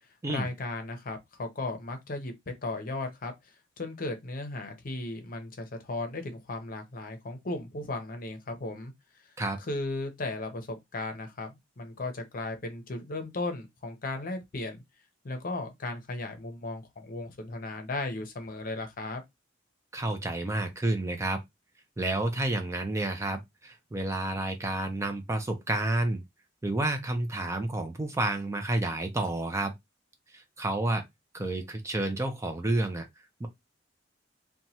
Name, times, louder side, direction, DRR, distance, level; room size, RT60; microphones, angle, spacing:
voice 1, 0.3-3.3 3.8-8.9 9.7-14.8 15.2-19.2, left 2 dB, 50° left, 0.7 m, -36 dB
voice 2, 19.9-21.4 22.0-26.2 26.6-29.7 30.3-31.0 31.3-33.1 33.4-33.5, right 2 dB, 15° right, 0.4 m, -30 dB
2.9 x 2.2 x 2.7 m
head